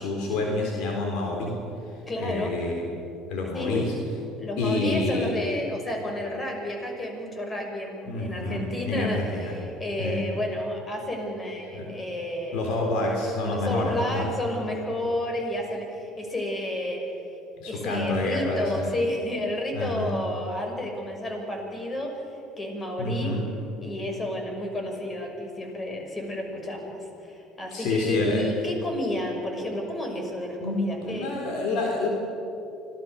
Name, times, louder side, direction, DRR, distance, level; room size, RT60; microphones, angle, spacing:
voice 1, 0.0-1.6 2.2-2.9 3.3-4.0 4.6-5.4 8.1-9.6 10.0-10.3 11.7-11.9 12.5-14.3 17.6-18.9 19.7-20.2 23.0-23.5 27.7-28.5 30.6-32.1, left 2 dB, 65° left, 0 dB, 3.8 m, -28 dB
voice 2, 2.1-2.6 3.5-3.8 4.4-12.7 13.5-17.0 17.7-22.1 22.6-23.4 23.8-31.4, left 1 dB, 30° left, 2 dB, 6.1 m, -31 dB
26.0 x 18.0 x 6.9 m, 2.9 s
hypercardioid pair, 65°, 0 cm